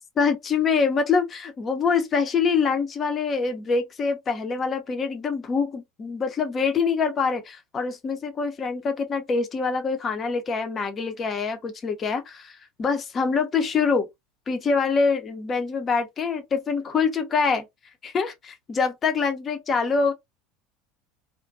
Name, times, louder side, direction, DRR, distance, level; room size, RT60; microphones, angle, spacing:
voice 1, 0.2-14.1 14.5-17.6 18.0-20.1, left 5 dB, 35° left, 0.7 m, -25 dB
2.4 x 2.2 x 2.5 m
hypercardioid pair, 75°, 0 cm